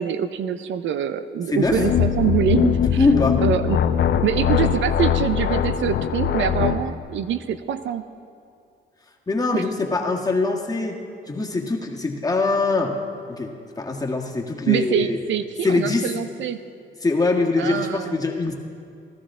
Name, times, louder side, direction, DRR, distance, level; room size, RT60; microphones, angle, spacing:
voice 1, 0.0-2.8 3.4-3.8 4.2-8.0 9.5-9.6 14.7-16.6 17.6-18.2, right 9 dB, 70° right, 11 dB, 0.6 m, -24 dB
voice 2, 1.5-1.8 2.8-3.4 9.3-11.0 11.3-13.0 13.3-15.2 15.6-16.1 17.0-18.5, left 3 dB, 20° left, 0 dB, 1.6 m, -23 dB
sound 1, 1.6-6.9, left 9 dB, 65° left, 0.6 m, -21 dB
16.0 x 13.0 x 3.7 m, 2.5 s
cardioid pair, 90°, 20 cm